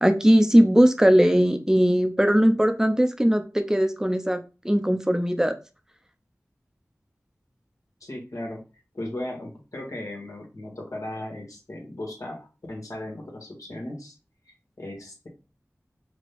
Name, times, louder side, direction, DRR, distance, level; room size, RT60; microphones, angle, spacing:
voice 1, 0.0-4.4 4.6-5.5, equal, 10° right, 9 dB, 0.6 m, -19 dB
voice 2, 8.0-8.6 8.9-14.1 14.8-15.3, left 1 dB, 75° left, 0 dB, 1.6 m, -36 dB
4.9 x 2.3 x 3.5 m, 0.31 s
wide cardioid pair, 40°, 6 cm